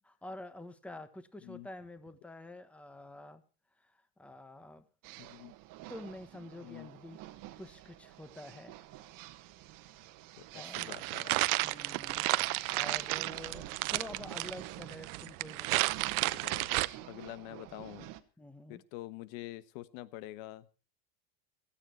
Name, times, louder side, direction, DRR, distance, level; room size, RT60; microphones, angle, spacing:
voice 1, 0.0-3.4 3.8-4.8 5.9-7.2 7.6-8.7 10.5-10.9 11.6-12.3 12.6-15.9 18.4-18.8, left 1 dB, 5° left, 11 dB, 1.1 m, -48 dB
sound 1, 5.0-18.2, right 15 dB, 50° right, 1.4 m, -49 dB
voice 2, 5.2-5.5 6.6-6.9 10.4-11.6 16.3-16.7 17.1-18.1 18.7-20.7, left 16 dB, 65° left, 15 dB, 1.3 m, -46 dB
sound 2, 10.7-16.9, right 21 dB, 85° right, 0.8 m, -32 dB
16.0 x 13.5 x 4.5 m, 0.35 s
supercardioid pair, 135°, 42 cm